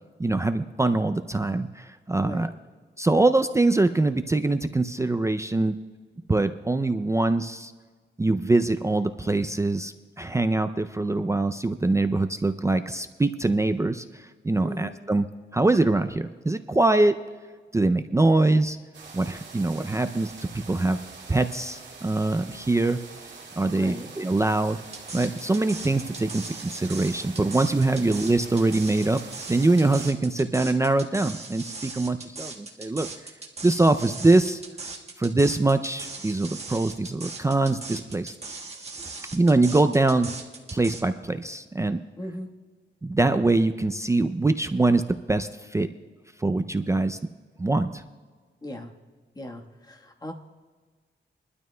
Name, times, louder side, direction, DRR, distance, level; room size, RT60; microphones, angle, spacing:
voice 1, 0.2-2.5 3.0-5.8 6.3-7.7 8.2-15.3 15.5-17.1 17.7-18.8 19.1-21.0 21.3-23.0 23.6-24.8 25.1-29.2 29.5-33.1 33.6-34.6 35.2-38.3 39.3-40.3 40.7-42.0 43.0-45.9 46.4-47.2 47.6-48.0, right 2 dB, 15° right, 8 dB, 0.4 m, -23 dB
voice 2, 2.2-2.5 14.6-14.9 23.7-24.1 27.9-28.2 42.2-42.5 48.6-48.9 49.3-50.3, equal, 20° left, 2 dB, 1.3 m, -37 dB
sound 1, 18.9-30.1, right 4 dB, 65° right, 2.4 m, -44 dB
sound 2, 24.9-41.0, right 3 dB, 35° right, 1.4 m, -39 dB
23.0 x 12.5 x 2.2 m, 1.5 s
wide cardioid pair, 130°, 19 cm